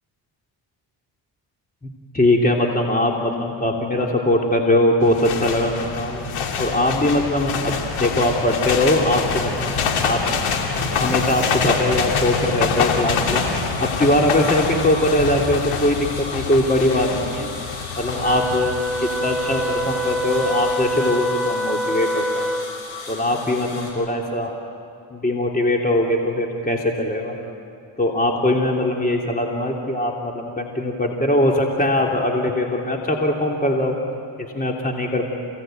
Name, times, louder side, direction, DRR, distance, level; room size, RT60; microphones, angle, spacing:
voice 1, 1.8-6.2 6.6-9.7 10.0-10.2 11.0-13.4 13.8-17.5 18.0-22.5 23.1-24.5 25.1-27.3 28.0-34.0 34.4-35.3, left 1 dB, 15° left, 0 dB, 3.2 m, -21 dB
sound 1, 5.0-20.9, left 5 dB, 85° left, 2.8 m, -26 dB
sound 2, 9.8-23.9, left 4 dB, 70° left, 7.2 m, -36 dB
Wind instrument woodwind instrument, 18.2-22.8, equal, ahead, 1.3 m, -25 dB
28.5 x 18.0 x 9.2 m, 2.5 s
supercardioid pair, 65°, 49 cm